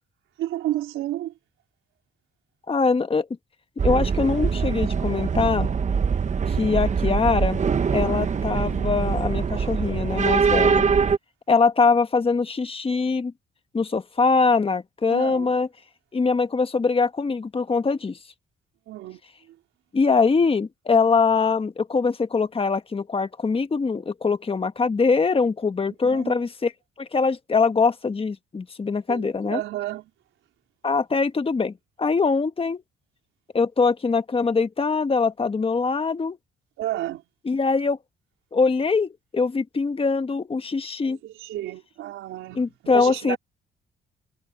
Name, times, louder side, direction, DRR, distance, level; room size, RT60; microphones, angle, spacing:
voice 1, 0.4-1.3 10.6-10.9 15.1-15.6 18.9-19.6 26.0-26.4 29.1-30.1 36.8-37.2 41.0-42.6 42.9-43.4, right 14 dB, 85° right, 4.0 m, -32 dB
voice 2, 2.7-3.3 3.8-5.7 6.5-7.6 7.9-10.9 11.5-13.3 13.7-15.7 16.1-18.2 19.9-26.7 27.0-29.6 30.8-32.8 33.5-36.4 37.4-38.0 38.5-41.2 42.5-43.4, left 4 dB, 30° left, 1.4 m, -23 dB
sound 1, 3.8-11.2, right 6 dB, 35° right, 1.2 m, -23 dB
cardioid pair, 90°, 20 cm